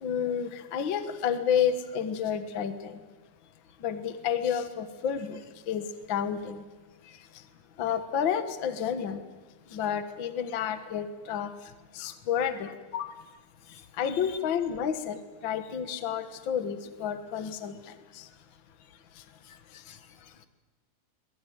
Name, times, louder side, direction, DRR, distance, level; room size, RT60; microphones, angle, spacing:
voice 1, 0.0-3.0 3.8-6.6 7.3-7.4 7.8-9.2 9.7-11.5 11.9-12.7 13.9-18.3 19.2-19.3 19.7-19.8, left 8 dB, 50° left, 10 dB, 1.9 m, -30 dB
voice 2, 19.4-20.5, left 10 dB, 75° left, 10 dB, 2.8 m, -43 dB
24.0 x 22.5 x 9.4 m, 1.3 s
omnidirectional pair, 3.4 m